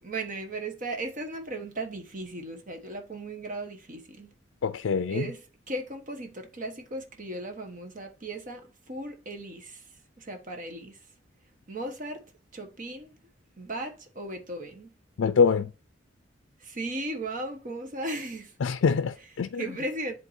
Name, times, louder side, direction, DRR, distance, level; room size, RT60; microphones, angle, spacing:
voice 1, 0.0-4.3 5.1-9.9 10.2-11.1 11.7-12.2 12.5-13.2 13.6-14.9 16.6-18.5 19.6-20.1, right 2 dB, 45° right, 1.3 m, -36 dB
voice 2, 4.6-5.3 15.2-15.7 18.6-19.6, left 5 dB, 90° left, 0.4 m, -24 dB
11.0 x 3.8 x 2.7 m
head